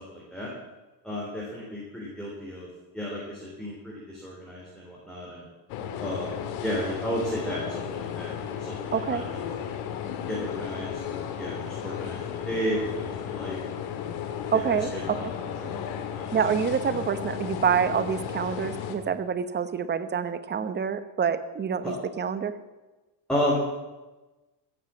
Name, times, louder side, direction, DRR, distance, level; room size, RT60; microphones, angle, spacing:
voice 1, 0.1-0.5 1.0-2.7 2.9-5.4 6.0-8.7 9.1-9.7 10.3-13.9 14.9-16.3 21.8-21.9 23.3-23.5, equal, ahead, -5 dB, 3.4 m, -33 dB
sound 1, 5.7-19.0, left 9 dB, 80° left, 1.9 m, -34 dB
voice 2, 8.9-9.2 14.5-15.3 16.3-22.5, right 7 dB, 20° right, 11 dB, 0.9 m, -27 dB
16.0 x 7.4 x 7.5 m, 1.1 s
cardioid pair, 120°, 48 cm